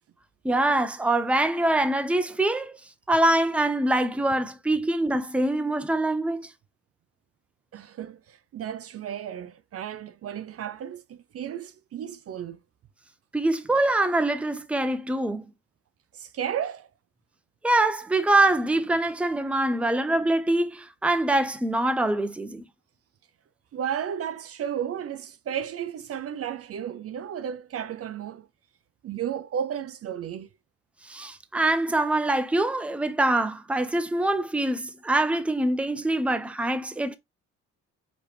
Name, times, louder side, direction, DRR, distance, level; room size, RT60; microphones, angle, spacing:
voice 1, 0.4-2.8 3.1-6.5 13.3-15.5 17.6-22.6 31.0-37.2, right 2 dB, 5° right, 0.6 m, -24 dB
voice 2, 7.7-12.6 16.1-16.9 23.7-28.5 29.0-30.5, right 9 dB, 50° right, 0.5 m, -33 dB
4.9 x 2.9 x 3.3 m
cardioid pair, 90°, 30 cm